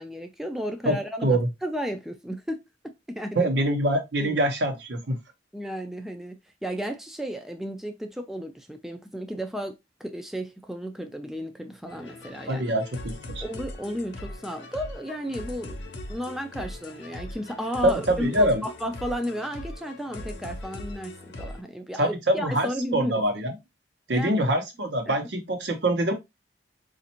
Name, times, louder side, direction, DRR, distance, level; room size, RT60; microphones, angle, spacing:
voice 1, 0.0-3.5 4.2-4.4 5.5-6.4 6.6-9.8 10.0-12.7 13.4-15.8 16.1-23.2 24.1-24.3 25.1-25.2, equal, ahead, 0.3 m, -33 dB
voice 2, 3.3-5.2 12.5-13.4 17.8-18.6 22.0-23.5 24.1-26.1, right 1 dB, 70° right, 0.9 m, -24 dB
sound 1, 11.9-21.6, left 1 dB, 70° left, 0.7 m, -40 dB
4.1 x 2.5 x 2.8 m
head